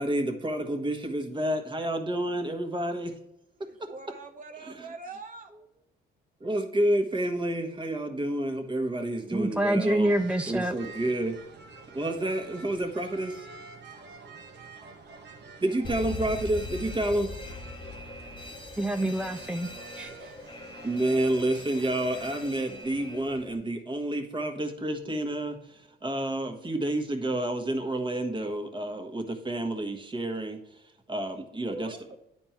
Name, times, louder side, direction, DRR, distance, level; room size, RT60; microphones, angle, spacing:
voice 1, 0.0-3.2 3.6-3.9 4.6-4.9 6.4-10.1 10.5-11.4 11.9-13.5 15.6-17.3 20.8-30.8 31.1-32.2, right 1 dB, 25° right, 4 dB, 1.4 m, -29 dB
voice 2, 3.7-5.5 31.7-32.1, right 4 dB, 40° right, 5 dB, 0.7 m, -43 dB
voice 3, 9.3-10.7 18.8-19.7 20.0-20.3, right 1 dB, 5° right, 6 dB, 0.4 m, -27 dB
sound 1, 10.1-22.4, right 4 dB, 60° right, 1.1 m, -48 dB
Alarm, 15.8-23.5, left 2 dB, 25° left, 1.0 m, -41 dB
10.0 x 4.4 x 4.4 m, 0.86 s
cardioid pair, 90°, 20 cm